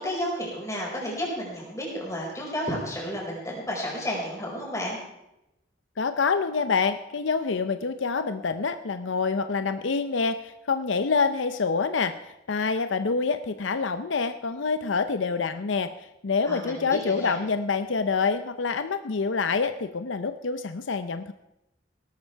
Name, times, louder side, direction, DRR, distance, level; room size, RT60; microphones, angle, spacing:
voice 1, 0.0-5.0 16.5-17.3, equal, 15° left, -3 dB, 5.0 m, -32 dB
voice 2, 6.0-12.1 12.5-21.3, left 4 dB, 80° left, 10 dB, 0.6 m, -26 dB
18.0 x 12.5 x 4.6 m, 0.88 s
head